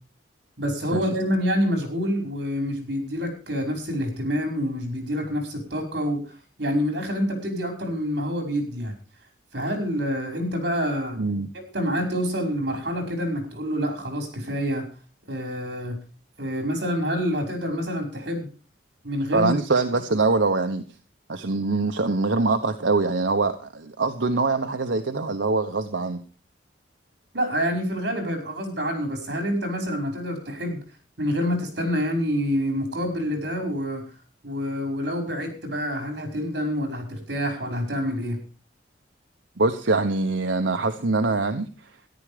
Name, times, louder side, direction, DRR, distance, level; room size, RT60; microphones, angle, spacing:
voice 1, 0.6-6.2 6.6-8.9 9.5-11.2 11.5-14.9 15.3-16.0 16.4-18.5 19.0-19.5 27.3-30.8 31.2-34.0 34.4-38.4, equal, 65° right, 5.4 m, -27 dB
voice 2, 11.2-11.5 19.3-20.8 21.3-26.2 39.6-41.7, right 3 dB, 90° right, 1.0 m, -23 dB
13.5 x 11.5 x 5.0 m
head